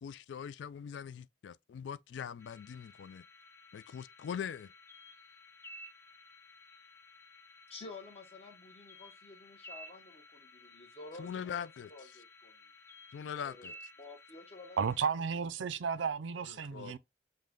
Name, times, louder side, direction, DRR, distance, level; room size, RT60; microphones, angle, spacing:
voice 1, 0.0-3.2 3.7-4.7 11.2-11.9 13.1-13.7 16.5-17.0, left 8 dB, 70° left, 0.3 m, -42 dB
sound 1, 2.4-15.0, left 1 dB, 15° left, 0.5 m, -55 dB
voice 2, 7.7-12.6 13.4-14.8 15.1-15.2, left 3 dB, 35° left, 0.9 m, -51 dB
voice 3, 14.8-17.0, right 6 dB, 80° right, 0.4 m, -33 dB
5.3 x 2.2 x 3.7 m
head